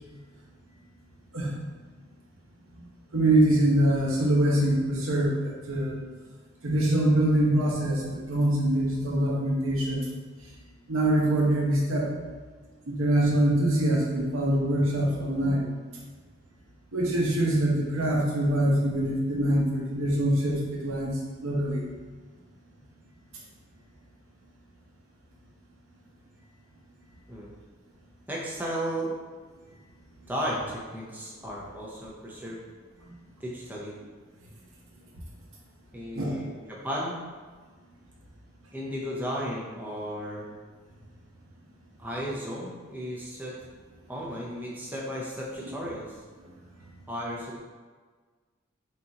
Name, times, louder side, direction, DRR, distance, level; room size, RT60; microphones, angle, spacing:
voice 1, 3.1-6.0 6.6-10.0 10.9-12.1 12.9-15.7 16.9-21.1 21.4-21.8 36.1-36.4, right 1 dB, 75° right, -3 dB, 0.9 m, -24 dB
voice 2, 28.3-29.1 30.3-32.6 33.4-33.9 35.9-37.2 38.7-40.5 42.0-43.6 44.1-46.2 47.1-47.6, equal, 10° right, -4 dB, 0.5 m, -34 dB
4.2 x 3.6 x 2.8 m, 1.4 s
head